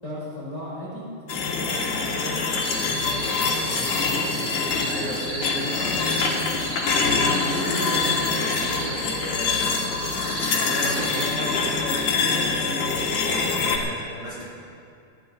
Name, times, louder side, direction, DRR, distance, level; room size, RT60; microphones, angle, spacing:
voice 1, 0.0-2.3 2.8-4.9 6.5-6.8 7.4-8.4 13.3-13.8, left 1 dB, 25° left, -7 dB, 5.5 m, -37 dB
sound 1, 1.3-13.8, left 4 dB, 85° left, 3.3 m, -25 dB
sound 2, 2.6-11.3, right 1 dB, 70° right, 4.9 m, -35 dB
voice 2, 4.9-6.7 7.2-9.7 10.2-12.8 13.5-14.4, equal, 45° right, -8 dB, 4.8 m, -35 dB
19.0 x 16.5 x 4.1 m, 2.5 s
omnidirectional pair, 3.3 m